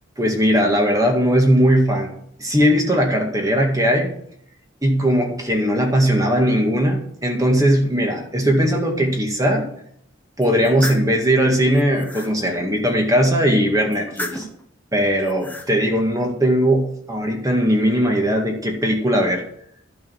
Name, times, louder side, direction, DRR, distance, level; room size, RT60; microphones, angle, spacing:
voice 1, 0.2-2.1 2.4-4.1 4.8-9.7 10.4-14.5 14.9-19.4, equal, 20° right, 2 dB, 2.0 m, -19 dB
sound 1, 10.4-11.1 11.7-12.3 13.9-14.6 15.2-15.7, left 1 dB, 10° left, 1.2 m, -33 dB
12.5 x 5.4 x 7.3 m, 0.69 s
head